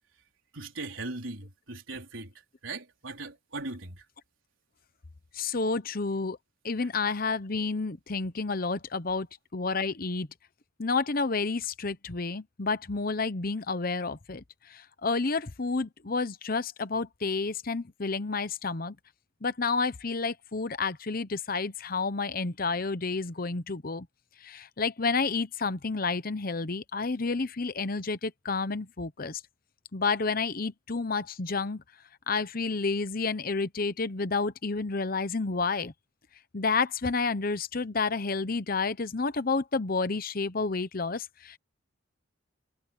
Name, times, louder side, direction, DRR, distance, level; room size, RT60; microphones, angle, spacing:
voice 1, 0.5-2.3 2.6-4.0, right 3 dB, 80° right, 4.2 m, -39 dB
voice 2, 5.3-6.4 6.6-9.3 9.5-10.3 10.8-14.4 14.7-19.0 19.4-24.1 24.4-29.4 29.9-31.8 32.3-35.9 36.5-41.6, left 4 dB, 45° left, 0.9 m, -30 dB
head